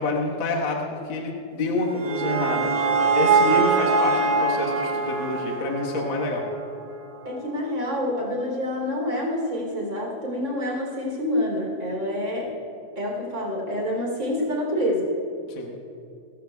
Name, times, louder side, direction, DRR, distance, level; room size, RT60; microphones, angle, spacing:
voice 1, 0.0-6.4 15.5-15.7, left 3 dB, 55° left, -2 dB, 1.3 m, -28 dB
sound 1, 1.6-6.8, right 4 dB, 70° right, 1.3 m, -23 dB
voice 2, 7.2-12.5 12.9-15.1, left 1 dB, 25° right, -1 dB, 3.4 m, -27 dB
29.5 x 13.5 x 2.3 m, 2.5 s
omnidirectional pair, 4.2 m